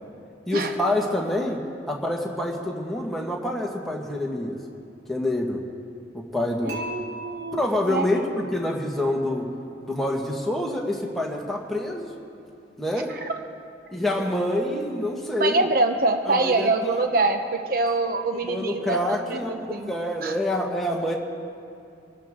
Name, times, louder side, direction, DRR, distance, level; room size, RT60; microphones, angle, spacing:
voice 1, 0.5-4.6 5.1-5.6 6.1-6.8 7.5-9.5 9.8-12.1 12.8-13.1 13.9-15.6 16.3-16.7 17.0-17.1 18.4-19.5 19.9-21.2, left 1 dB, ahead, -2 dB, 1.6 m, -27 dB
voice 2, 6.6-7.6 7.9-8.1 8.6-8.7 13.2-13.3 15.4-19.9 20.2-20.3, right 3 dB, 50° right, 5 dB, 0.9 m, -25 dB
Dishes pots and pans / Chink clink, 6.7-8.8, right 1 dB, 85° right, 3.3 m, -39 dB
25.5 x 13.0 x 3.8 m, 2.6 s
head